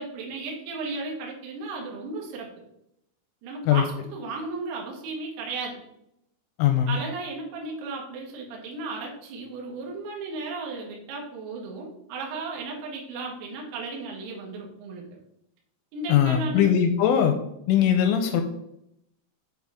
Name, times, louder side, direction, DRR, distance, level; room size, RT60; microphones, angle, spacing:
voice 1, 0.0-2.5 3.4-5.8 6.9-15.0 15.9-16.7 17.8-17.9, right 3 dB, 65° right, -1 dB, 2.9 m, -35 dB
voice 2, 6.6-7.0 16.1-17.4 17.7-18.4, left 9 dB, 85° left, 6 dB, 2.8 m, -20 dB
8.7 x 3.9 x 3.5 m, 0.78 s
omnidirectional pair, 5.8 m